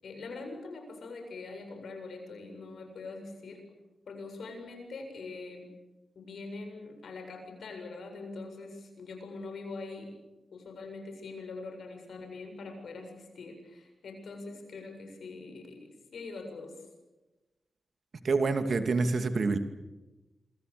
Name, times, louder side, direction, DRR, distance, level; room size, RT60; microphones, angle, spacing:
voice 1, 0.0-3.7 4.1-5.7 6.2-10.1 10.5-16.8, left 3 dB, 75° left, 5 dB, 7.4 m, -43 dB
voice 2, 18.2-19.6, right 4 dB, 60° right, 8 dB, 2.5 m, -27 dB
27.0 x 25.0 x 6.9 m, 1.1 s
cardioid pair, 70°, 0 cm